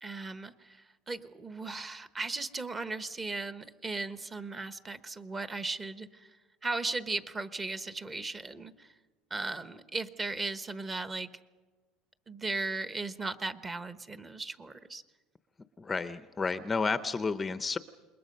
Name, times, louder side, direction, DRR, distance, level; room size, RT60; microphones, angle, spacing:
voice 1, 0.0-6.3 6.6-8.9 9.3-11.3 12.3-15.0, right 3 dB, 20° right, 12 dB, 1.1 m, -37 dB
voice 2, 15.8-17.8, left 4 dB, 15° left, 12 dB, 0.7 m, -31 dB
27.5 x 21.5 x 5.4 m, 1.4 s
cardioid pair, 135°, 0 cm